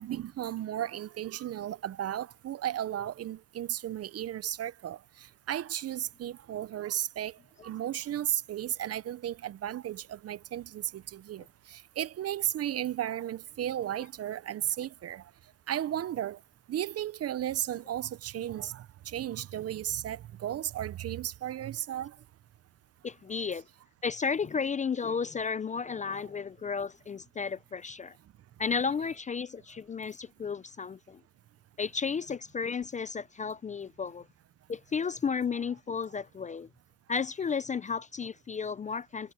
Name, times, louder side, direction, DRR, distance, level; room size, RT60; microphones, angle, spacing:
voice 1, 0.0-15.2 15.7-16.4 16.7-22.2 26.1-26.2, right 11 dB, 55° right, 0.6 m, -34 dB
voice 2, 23.0-23.6 24.0-28.2 28.6-31.2 31.8-34.3 34.7-36.7 37.1-39.3, left 5 dB, 25° left, 0.4 m, -33 dB
cardioid pair, 90°, 30 cm